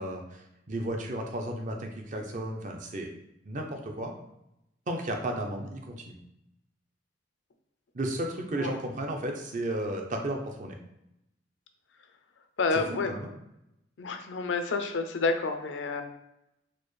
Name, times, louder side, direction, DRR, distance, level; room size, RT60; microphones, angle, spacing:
voice 1, 0.0-3.1 3.4-4.1 4.9-6.2 7.9-10.8 12.7-13.3, right 1 dB, 40° right, 2 dB, 0.6 m, -34 dB
voice 2, 12.6-13.1 14.0-16.0, left 3 dB, 80° left, 7 dB, 0.5 m, -29 dB
4.2 x 2.3 x 3.2 m, 0.83 s
head